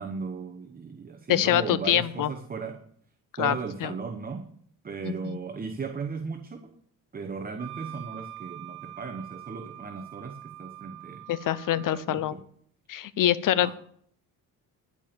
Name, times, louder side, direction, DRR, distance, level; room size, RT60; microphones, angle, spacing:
voice 1, 0.0-2.9 3.4-4.5 4.8-6.7 7.1-11.2 11.7-12.4 13.6-13.7, right 5 dB, 25° right, 6 dB, 0.9 m, -36 dB
voice 2, 1.3-2.3 3.4-3.6 3.8-3.9 5.2-5.4 11.3-12.3 12.9-13.7, left 12 dB, 60° left, 16 dB, 0.7 m, -24 dB
Wind instrument woodwind instrument, 7.6-12.1, right 14 dB, 85° right, 1.1 m, -44 dB
11.5 x 5.2 x 8.8 m, 0.63 s
cardioid pair, 120°, 37 cm